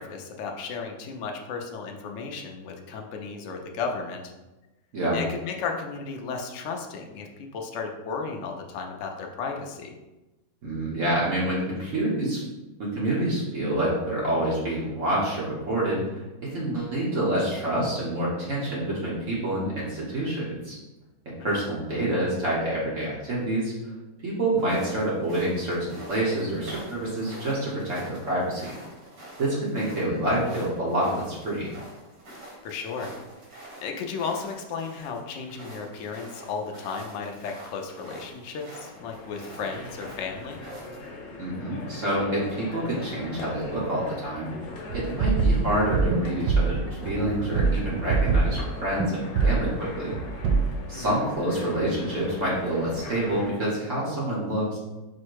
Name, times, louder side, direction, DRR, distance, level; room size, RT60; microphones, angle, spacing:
voice 1, 0.0-4.3 5.1-9.9 21.4-21.6 32.6-33.1 33.8-40.6 50.9-51.2, left 5 dB, 75° left, 2 dB, 0.6 m, -34 dB
voice 2, 10.6-12.4 12.8-16.2 16.5-20.8 21.4-23.9 24.2-28.7 29.4-31.7 41.4-44.5 44.9-50.2 50.9-54.8, right 1 dB, 50° right, -6 dB, 1.2 m, -27 dB
sound 1, 24.6-41.1, right 1 dB, 75° right, 2.0 m, -46 dB
sound 2, 38.9-53.5, left 3 dB, 60° left, 1.2 m, -41 dB
sound 3, 44.9-48.6 49.0-49.1 49.4-49.7 50.1-50.8, right 4 dB, 90° right, 1.3 m, -24 dB
4.9 x 2.1 x 4.6 m, 1.1 s
omnidirectional pair, 1.9 m